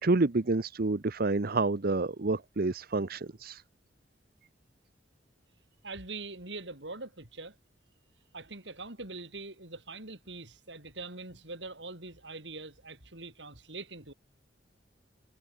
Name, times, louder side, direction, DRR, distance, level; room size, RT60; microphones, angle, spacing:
voice 1, 0.0-3.6, right 3 dB, 55° right, 0.8 m, -28 dB
voice 2, 5.8-7.5 8.3-14.1, right 3 dB, 70° right, 6.4 m, -43 dB
head